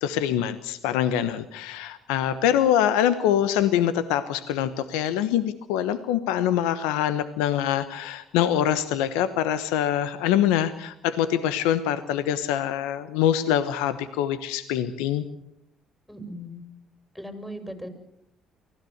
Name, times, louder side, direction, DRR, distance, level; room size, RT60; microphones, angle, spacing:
voice 1, 0.0-15.2, left 10 dB, 85° left, 13 dB, 1.1 m, -24 dB
voice 2, 16.1-16.6 17.1-17.9, equal, 5° left, 6 dB, 6.5 m, -38 dB
24.0 x 16.5 x 8.0 m, 0.77 s
supercardioid pair, 65°, 0 cm